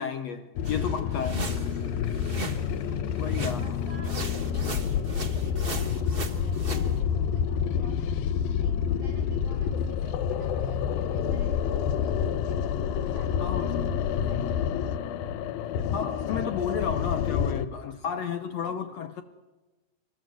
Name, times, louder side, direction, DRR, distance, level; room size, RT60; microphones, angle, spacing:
voice 1, 0.0-1.4 3.2-3.6 13.4-13.9 15.9-19.2, left 7 dB, 70° left, 1.7 m, -32 dB
sound 1, 0.6-17.7, left 8 dB, 90° left, 2.8 m, -28 dB
sound 2, 0.6-2.7 3.2-3.8 4.0-6.9, right 3 dB, 35° right, 0.8 m, -38 dB
voice 2, 1.5-1.9 3.1-8.0 8.6-12.6 12.9-15.3 18.0-18.4, right 3 dB, 80° right, 7.0 m, -52 dB
26.5 x 20.5 x 7.7 m
omnidirectional pair, 4.0 m